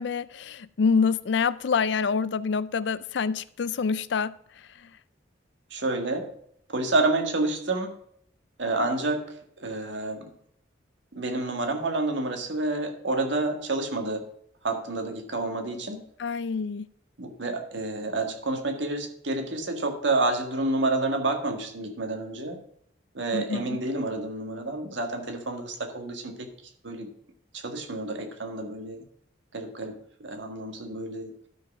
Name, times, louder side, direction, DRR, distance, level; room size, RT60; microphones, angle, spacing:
voice 1, 0.0-4.3 16.2-16.8 23.3-23.8, left 5 dB, 70° left, 0.4 m, -26 dB
voice 2, 5.7-6.3 6.7-7.9 8.6-9.2 9.6-10.3 11.1-14.3 14.6-16.0 17.2-22.6 23.2-26.5 26.8-27.1 27.5-29.0 29.5-31.3, right 2 dB, 80° right, 1.7 m, -29 dB
12.0 x 4.9 x 5.9 m
head